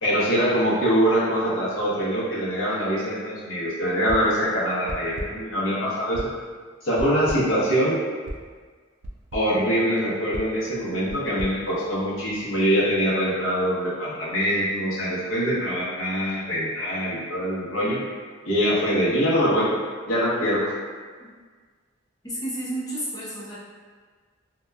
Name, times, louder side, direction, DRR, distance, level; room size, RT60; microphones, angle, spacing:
voice 1, 0.0-6.3 6.8-8.0 9.3-18.0 18.4-19.7 20.1-20.7, equal, 80° left, -8 dB, 0.8 m, -23 dB
sound 1, 4.1-4.4 4.9-5.5 6.1-6.5 7.0-7.6 8.3-8.5 9.0-9.6 10.3-12.4, right 1 dB, 65° right, 0.3 m, -37 dB
voice 2, 22.2-23.6, right 1 dB, 20° left, -9 dB, 0.7 m, -32 dB
2.8 x 2.2 x 2.2 m, 1.6 s
head